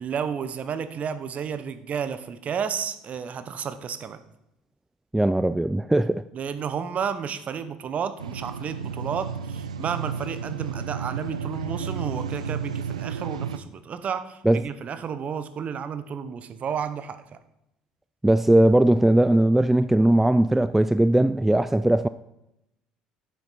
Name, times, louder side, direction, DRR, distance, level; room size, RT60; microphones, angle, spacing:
voice 1, 0.0-4.2 6.3-17.4, right 7 dB, 45° right, 0.9 m, -32 dB
voice 2, 5.1-6.2 14.5-14.6 18.2-22.1, right 1 dB, 5° right, 0.3 m, -19 dB
sound 1, 8.2-13.6, right 6 dB, 90° right, 0.3 m, -32 dB
9.7 x 7.2 x 4.2 m
hypercardioid pair, 60°, 3 cm